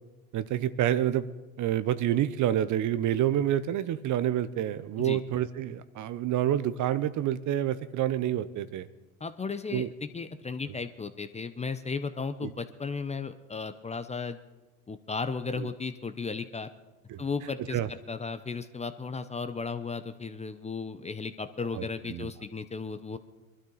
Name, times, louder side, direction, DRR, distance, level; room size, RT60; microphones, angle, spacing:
voice 1, 0.3-1.3 1.6-8.9 9.7-9.9 12.4-12.5 15.6-15.7 17.1-17.2 17.7-17.9 21.7-22.3, right 11 dB, 40° right, 15 dB, 0.8 m, -28 dB
voice 2, 9.2-14.4 14.9-16.7 17.2-17.8 18.1-23.2, left 4 dB, 15° left, 10 dB, 0.7 m, -35 dB
22.0 x 12.5 x 3.9 m, 1.1 s
hypercardioid pair, 85°, 44 cm